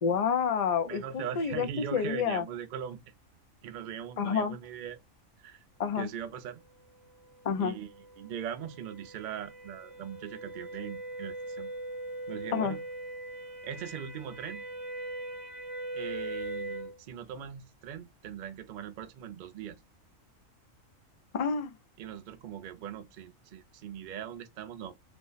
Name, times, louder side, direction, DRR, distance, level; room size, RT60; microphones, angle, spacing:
voice 1, 0.0-2.4 4.2-4.6 5.8-6.1 7.4-7.8 12.5-12.8 21.3-21.7, left 6 dB, 55° left, 0.4 m, -29 dB
voice 2, 0.8-3.1 3.6-5.0 5.4-5.6 5.9-6.6 7.6-11.7 12.3-12.8 13.6-14.7 15.9-19.8 22.0-24.9, right 9 dB, 65° right, 0.5 m, -40 dB
sound 1, 7.0-17.0, right 1 dB, 30° right, 0.9 m, -41 dB
2.9 x 2.1 x 3.8 m
omnidirectional pair, 1.4 m